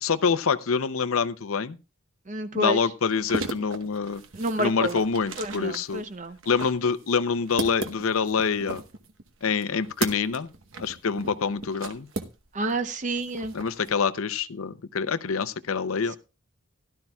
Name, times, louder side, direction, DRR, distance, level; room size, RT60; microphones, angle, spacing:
voice 1, 0.0-1.8 2.5-4.2 4.6-6.0 6.5-8.8 9.4-10.5 10.8-12.1 13.5-16.2, left 5 dB, 80° left, 0.6 m, -26 dB
voice 2, 2.3-2.8 4.4-5.0 5.4-6.4 12.5-13.5, right 2 dB, 35° right, 0.7 m, -29 dB
sound 1, 3.1-12.8 13.1-13.9, right 3 dB, 65° right, 1.0 m, -37 dB
16.5 x 12.0 x 2.3 m
head